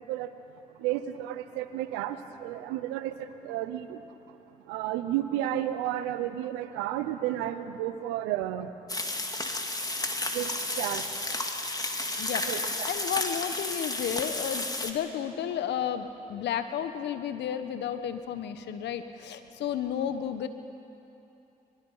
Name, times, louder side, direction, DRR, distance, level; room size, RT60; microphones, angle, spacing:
voice 1, 0.8-4.0 4.7-8.7 10.3-10.5 10.8-11.0 12.5-12.9, right 12 dB, 90° right, 11 dB, 0.8 m, -32 dB
sound 1, 8.9-14.9, left 2 dB, 20° left, 2.3 m, -32 dB
voice 2, 12.2-20.5, left 9 dB, 75° left, 10 dB, 1.1 m, -32 dB
24.5 x 21.0 x 5.7 m, 2.9 s
hypercardioid pair, 40°, 18 cm